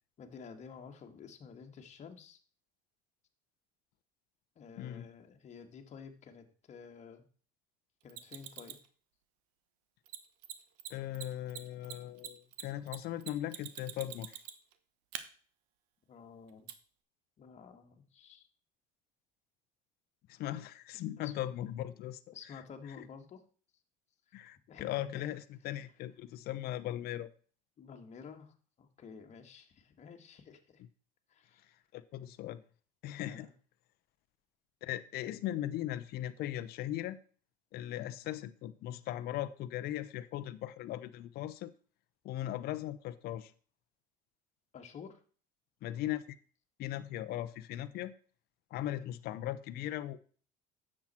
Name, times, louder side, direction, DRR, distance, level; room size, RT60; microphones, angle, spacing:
voice 1, 0.2-2.4 4.6-7.2 8.0-8.8 16.1-16.7 17.4-18.5 21.2-21.3 22.3-23.4 24.3-24.4 24.7-25.3 27.8-30.8 31.3-31.7 33.2-33.5 44.7-45.2, left 6 dB, 40° left, 1.9 m, -51 dB
Mechanisms, 8.1-8.9 10.1-10.2 10.4-10.5 10.8-10.9 11.1-14.7 15.1-15.2 16.7-16.8, right 12 dB, 90° right, 1.2 m, -44 dB
voice 2, 10.9-14.4 20.3-22.2 24.3-27.3 31.9-32.6 33.0-33.5 34.8-37.2 37.7-41.7 42.2-43.5 45.8-46.2 46.8-48.1 48.7-50.2, left 13 dB, 60° left, 0.8 m, -38 dB
10.0 x 7.6 x 4.4 m
cardioid pair, 115°, 18 cm